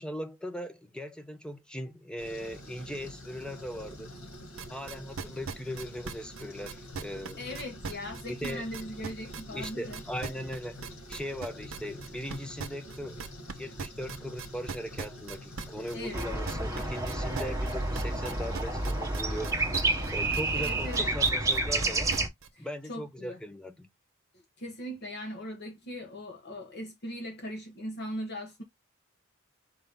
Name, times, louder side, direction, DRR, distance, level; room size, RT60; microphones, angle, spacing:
voice 1, 0.0-4.1 4.7-7.4 8.3-8.7 9.5-10.8 11.1-13.2 13.6-19.6 20.1-22.1 22.6-23.9, equal, 5° left, 0.5 m, -39 dB
sound 1, 2.2-21.1, left 1 dB, 85° left, 2.7 m, -46 dB
sound 2, 4.3-22.5, right 5 dB, 70° right, 0.7 m, -39 dB
voice 2, 7.4-10.0 15.9-16.3 20.5-21.1 22.5-23.4 24.6-28.6, equal, 50° left, 1.1 m, -39 dB
sound 3, 16.1-22.3, right 2 dB, 15° right, 1.0 m, -29 dB
4.5 x 2.7 x 3.5 m
head